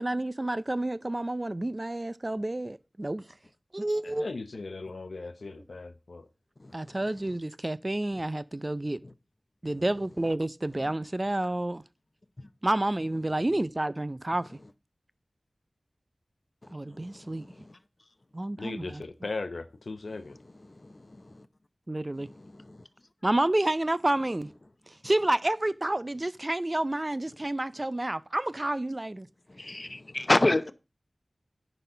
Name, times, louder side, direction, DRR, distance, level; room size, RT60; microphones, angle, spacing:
voice 1, 0.0-3.3 3.7-4.3 5.6-5.7 6.7-9.0 9.6-11.8 12.6-14.6 16.7-17.5 18.3-19.0 21.9-22.3 23.2-24.5 24.9-29.3, right 1 dB, 35° right, 0.5 m, -29 dB
voice 2, 4.0-6.3 18.6-20.4 30.4-30.7, left 3 dB, 80° left, 0.8 m, -38 dB
voice 3, 6.6-6.9 9.0-9.1 16.6-17.7 20.7-21.5 22.4-22.8 29.5-30.7, left 2 dB, 45° left, 0.7 m, -30 dB
10.0 x 4.1 x 5.6 m
wide cardioid pair, 40°, 0 cm